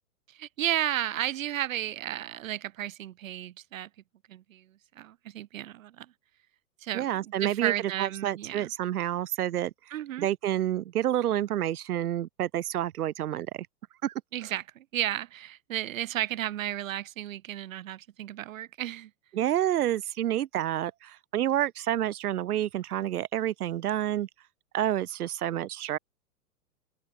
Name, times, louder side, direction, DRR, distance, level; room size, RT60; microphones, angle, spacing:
voice 1, 0.3-3.9 4.3-4.7 4.9-6.1 6.8-8.7 9.9-10.3 14.3-19.1, right 12 dB, 60° right, 3.0 m, -33 dB
voice 2, 6.9-7.7 8.0-13.7 14.0-14.1 19.3-24.3 24.7-26.0, right 12 dB, 75° right, 0.6 m, -29 dB
open air
hypercardioid pair, 115°, 45 cm